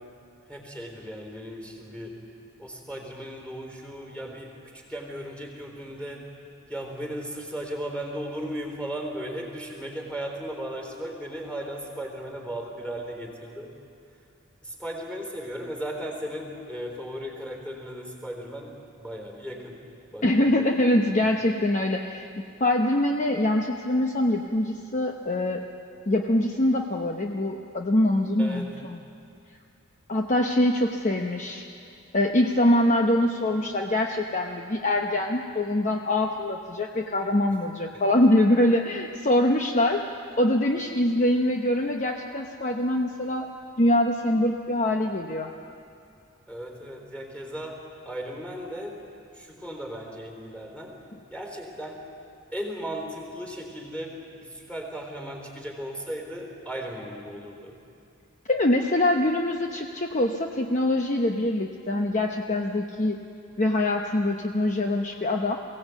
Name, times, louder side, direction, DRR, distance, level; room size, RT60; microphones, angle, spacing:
voice 1, 0.5-2.1 2.6-6.3 6.7-13.7 14.6-19.8 20.1-20.7 28.4-28.7 46.5-47.8 48.0-49.0 49.3-51.0 51.3-52.0 52.5-57.8, equal, 5° left, 1 dB, 3.8 m, -36 dB
voice 2, 20.2-22.3 22.6-25.6 26.1-29.0 30.1-31.7 32.1-40.0 40.4-43.5 43.8-45.5 58.5-63.2 63.6-65.6, left 1 dB, 35° left, 2 dB, 0.9 m, -24 dB
22.5 x 17.0 x 8.3 m, 2.5 s
head